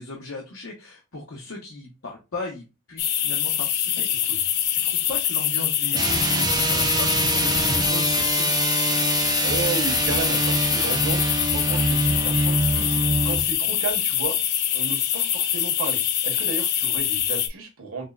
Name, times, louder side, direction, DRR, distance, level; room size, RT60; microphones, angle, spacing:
voice 1, 0.0-4.3 4.7-8.6, left 3 dB, 75° left, 0.9 m, -37 dB
sound 1, 3.0-17.5, left 10 dB, 50° left, 0.4 m, -24 dB
voice 2, 4.0-4.4 9.4-12.9 13.2-14.4 14.7-18.1, right 4 dB, 90° right, 1.2 m, -33 dB
sound 2, 5.9-13.5, right 3 dB, 20° right, 0.3 m, -25 dB
5.4 x 2.1 x 2.3 m
head